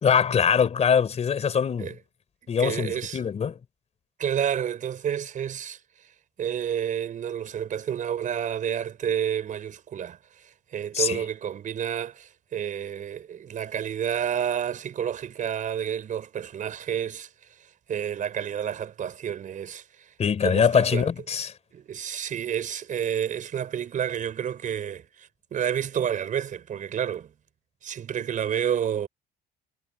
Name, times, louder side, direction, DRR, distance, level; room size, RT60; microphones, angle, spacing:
voice 1, 0.0-1.9 2.5-3.6 10.9-11.2 20.2-21.5, left 7 dB, 40° left, 4.0 m, -23 dB
voice 2, 2.4-3.2 4.2-5.8 6.4-10.2 10.4-17.3 17.9-20.1 20.4-21.1 21.7-27.3 27.8-29.1, right 9 dB, 50° right, 5.1 m, -30 dB
cardioid pair, 110°, 17 cm